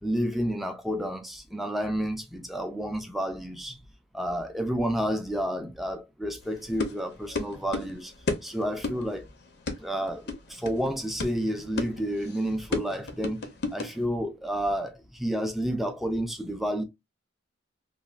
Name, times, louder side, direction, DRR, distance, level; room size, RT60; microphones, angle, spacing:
voice 1, 0.0-3.8 4.1-8.1 8.4-9.3 9.8-16.8, equal, ahead, 0.3 m, -30 dB
sound 1, 6.4-14.0, left 3 dB, 55° left, 0.5 m, -34 dB
3.1 x 2.1 x 2.3 m
head